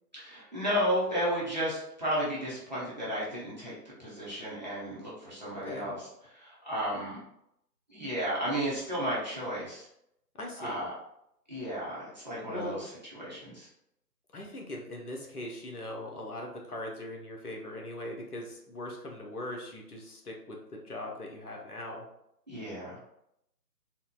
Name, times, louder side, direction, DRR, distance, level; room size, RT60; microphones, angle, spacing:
voice 1, 0.1-3.7 4.0-7.2 7.9-9.9 10.6-10.9 11.5-13.7 22.5-23.0, equal, 25° right, -8 dB, 0.7 m, -33 dB
voice 2, 10.4-10.8 12.5-12.8 14.3-22.0, left 1 dB, 65° left, 0 dB, 0.8 m, -40 dB
3.8 x 2.1 x 2.3 m, 0.79 s
figure-of-eight pair, 150°, 50 cm